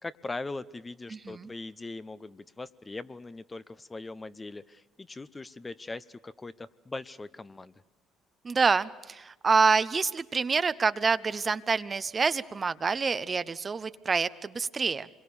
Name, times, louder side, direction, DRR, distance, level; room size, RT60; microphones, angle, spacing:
voice 1, 0.0-7.7, left 3 dB, 25° left, 14 dB, 0.7 m, -40 dB
voice 2, 1.1-1.5 8.4-15.1, right 5 dB, 35° right, 14 dB, 0.7 m, -27 dB
26.5 x 22.0 x 7.0 m, 1.1 s
hypercardioid pair, 65°, 0 cm